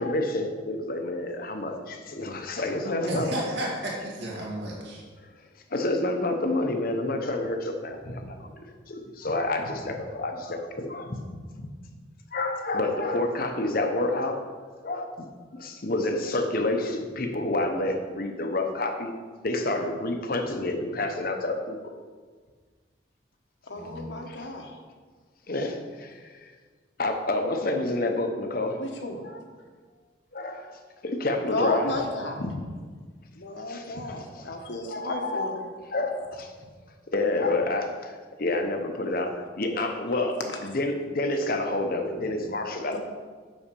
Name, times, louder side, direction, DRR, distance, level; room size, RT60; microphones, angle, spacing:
voice 1, 0.0-3.3 5.7-11.2 11.6-11.7 12.3-14.4 14.8-19.1 19.4-21.9 24.3-24.5 25.5-26.5 27.0-28.8 29.2-29.4 30.3-31.9 32.4-32.5 33.7-35.5 35.9-36.5 37.1-43.0, left 2 dB, 50° left, 4 dB, 0.9 m, -29 dB
voice 2, 3.0-5.0 23.7-24.1, right 1 dB, 60° right, -3 dB, 2.0 m, -32 dB
voice 3, 23.7-24.7 28.8-29.2 31.5-32.4 33.3-35.6 42.9-43.0, left 2 dB, 70° left, 2 dB, 1.2 m, -32 dB
7.2 x 6.3 x 5.4 m, 1.5 s
head